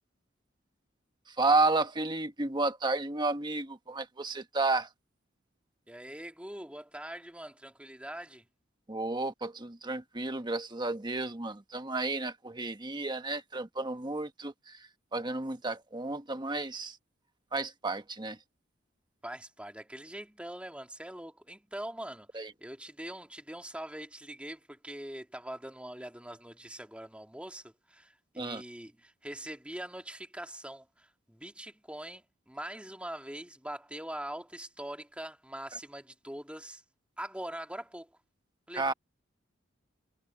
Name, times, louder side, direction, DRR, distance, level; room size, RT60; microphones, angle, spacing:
voice 1, 1.4-4.9 8.9-14.8 15.1-17.0 17.5-18.4 22.3-22.5 28.4-28.6 38.8-38.9, right 3 dB, 25° right, 1.4 m, -31 dB
voice 2, 5.9-8.4 19.2-36.8 37.2-38.1 38.7-38.9, right 1 dB, 5° right, 2.3 m, -43 dB
head